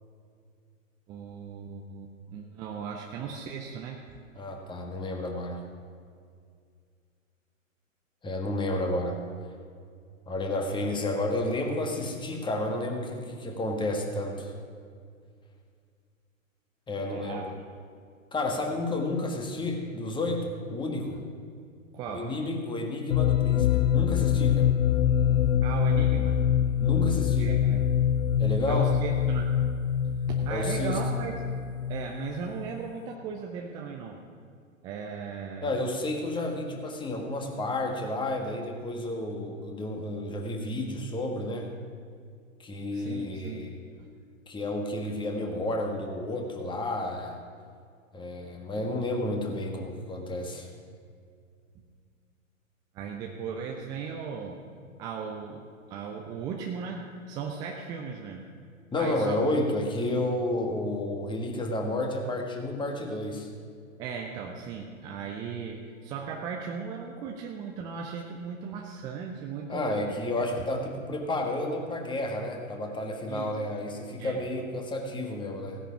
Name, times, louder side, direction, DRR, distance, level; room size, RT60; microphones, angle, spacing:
voice 1, 1.1-4.0 4.3-4.5 16.9-17.6 21.9-22.3 25.6-26.4 27.4-27.9 28.7-29.5 30.0-31.3 31.9-34.2 34.8-35.7 42.9-43.6 44.0-44.1 52.9-54.6 55.0-55.6 55.9-58.5 59.0-59.4 64.0-70.2 73.3-73.6 74.2-74.5, right 6 dB, 10° right, 1 dB, 0.4 m, -37 dB
voice 2, 4.3-5.6 8.2-9.1 10.3-14.5 16.9-17.5 18.3-21.2 22.1-24.7 26.8-27.6 28.4-28.9 30.5-31.0 35.6-41.7 42.6-43.8 44.5-47.4 48.1-50.7 58.9-63.5 69.7-75.8, left 1 dB, 10° left, 2 dB, 1.7 m, -31 dB
sound 1, 23.1-32.7, left 9 dB, 80° left, 0.5 m, -25 dB
16.0 x 10.0 x 6.0 m, 2.2 s
figure-of-eight pair, 115°, 40 cm